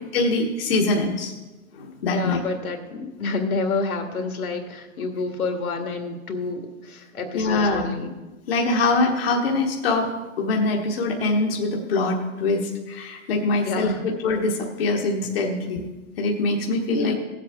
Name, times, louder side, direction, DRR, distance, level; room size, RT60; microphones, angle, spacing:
voice 1, 0.0-1.3 1.7-2.4 7.3-7.8 8.5-10.1 10.4-15.8 16.2-17.2, left 3 dB, 45° left, 0 dB, 1.3 m, -23 dB
voice 2, 2.1-8.1 13.6-14.0 16.9-17.2, left 3 dB, 80° left, 5 dB, 2.0 m, -28 dB
17.0 x 7.6 x 3.6 m, 1.2 s
hypercardioid pair, 165°, 43 cm